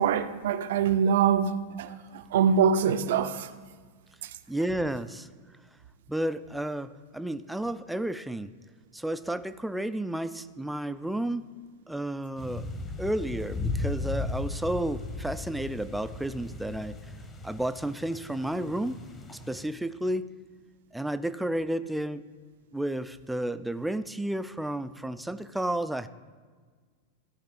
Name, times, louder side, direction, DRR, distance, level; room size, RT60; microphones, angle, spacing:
voice 1, 0.0-1.9 2.3-3.5, right 7 dB, 55° right, 11 dB, 0.5 m, -24 dB
voice 2, 4.5-5.3 6.1-8.5 8.9-11.4 11.9-12.7 13.0-17.0 17.4-19.0 19.3-20.3 20.9-22.2 22.7-26.1, right 1 dB, 5° right, 12 dB, 0.4 m, -32 dB
sound 1, 12.4-19.6, left 3 dB, 20° left, 1.1 m, -36 dB
14.5 x 4.8 x 5.3 m, 1.5 s
figure-of-eight pair, 90°, 0 cm